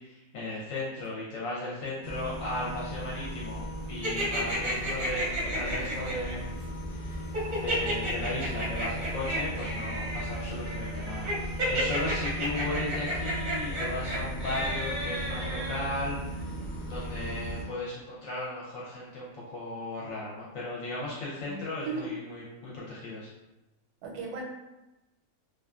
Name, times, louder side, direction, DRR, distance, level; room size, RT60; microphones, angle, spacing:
voice 1, 0.0-3.6 3.9-5.2 5.5-6.5 6.9-7.3 7.5-16.5 16.9-23.3, left 2 dB, 70° left, -6 dB, 0.9 m, -36 dB
sound 1, 2.0-17.6, equal, 45° left, 0.5 m, -37 dB
sound 2, 4.0-6.3 7.3-15.8, equal, 45° right, 0.6 m, -33 dB
voice 2, 21.4-22.1 24.0-24.4, right 4 dB, 85° right, 0 dB, 1.1 m, -37 dB
2.4 x 2.4 x 2.3 m, 1.0 s
omnidirectional pair, 1.6 m